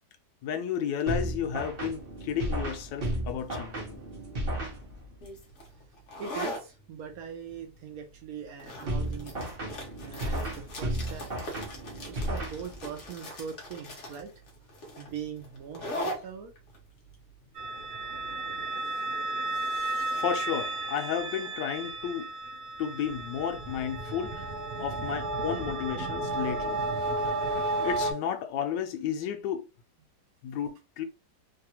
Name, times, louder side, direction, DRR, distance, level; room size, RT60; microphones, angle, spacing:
voice 1, 0.4-4.0 19.5-19.6 20.2-22.3 22.8-24.5 24.8-26.8 27.8-29.7 30.4-31.0, left 8 dB, 85° left, 1.2 m, -32 dB
sound 1, 1.1-5.3 8.9-13.1, right 1 dB, 45° right, 0.8 m, -34 dB
sound 2, 5.2-18.6, equal, 50° left, 1.1 m, -41 dB
voice 2, 6.2-9.3 10.0-11.3 12.0-14.3 15.0-16.5, right 7 dB, 70° right, 0.9 m, -41 dB
sound 3, 17.6-28.1, right 2 dB, 85° right, 0.5 m, -33 dB
3.2 x 2.3 x 2.8 m
omnidirectional pair, 1.9 m